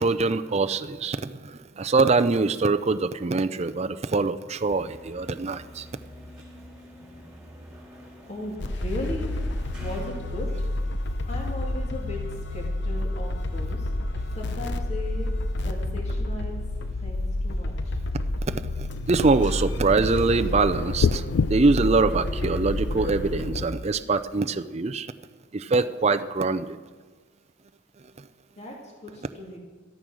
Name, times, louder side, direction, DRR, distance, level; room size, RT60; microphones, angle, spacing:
voice 1, 0.0-5.8 18.5-21.2 21.5-25.1 25.5-26.8, right 3 dB, 30° right, 10 dB, 0.5 m, -24 dB
sound 1, 4.7-10.2, equal, 5° right, 3.7 m, -46 dB
voice 2, 8.3-9.3 9.8-10.5 11.2-12.2 12.5-13.9 14.4-15.3 15.6-16.6 17.0-18.0 28.6-29.6, left 1 dB, 30° left, -1 dB, 2.4 m, -37 dB
sound 2, 8.6-23.7, left 1 dB, 55° left, 0.8 m, -29 dB
sound 3, 21.0-21.5, left 5 dB, 75° left, 0.4 m, -21 dB
13.5 x 13.0 x 6.3 m, 1.5 s
head